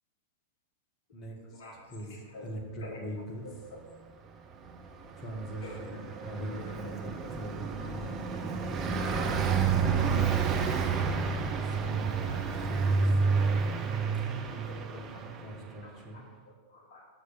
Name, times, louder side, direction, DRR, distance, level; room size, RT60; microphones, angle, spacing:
voice 1, 1.1-1.6 1.9-2.1 2.4-3.4 5.1-8.4 8.9-9.3 11.6-12.1 12.7-13.1 14.3-16.2, right 1 dB, 30° left, 0 dB, 1.7 m, -42 dB
voice 2, 3.4-3.8 5.6-6.0 6.8-6.9 7.8-7.9 9.3-9.6 12.2-12.5 13.1-13.4 14.7-15.0 15.4-15.5 15.8-16.2 16.7-17.1, left 2 dB, 60° left, 0 dB, 1.0 m, -48 dB
Car passing by, 4.7-15.7, right 5 dB, 30° right, 0.6 m, -30 dB
6.5 x 4.9 x 6.6 m, 1.5 s
figure-of-eight pair, 95°, 0 cm